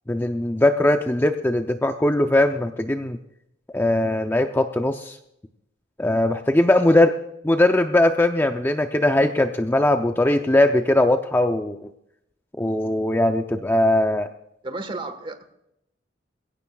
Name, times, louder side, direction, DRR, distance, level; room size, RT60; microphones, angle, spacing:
voice 1, 0.1-3.2 3.7-5.2 6.0-7.2 7.4-11.9 12.6-14.3, left 1 dB, 10° left, 6 dB, 0.5 m, -20 dB
voice 2, 14.6-15.5, right 2 dB, 25° right, 9 dB, 1.4 m, -33 dB
21.5 x 17.0 x 2.3 m, 0.80 s
head